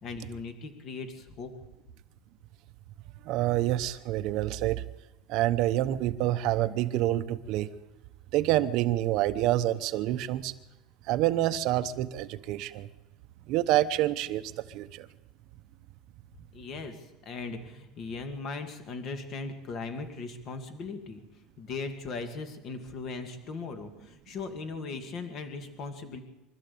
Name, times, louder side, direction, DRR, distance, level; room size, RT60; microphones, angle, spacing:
voice 1, 0.0-1.5 16.5-21.2 21.6-26.2, left 4 dB, 35° left, 7 dB, 2.2 m, -38 dB
voice 2, 3.2-4.8 5.3-7.7 8.3-10.5 11.1-12.9 13.5-15.1, right 14 dB, 50° right, 11 dB, 0.9 m, -27 dB
24.5 x 13.0 x 8.5 m, 0.97 s
cardioid pair, 170°, 0 cm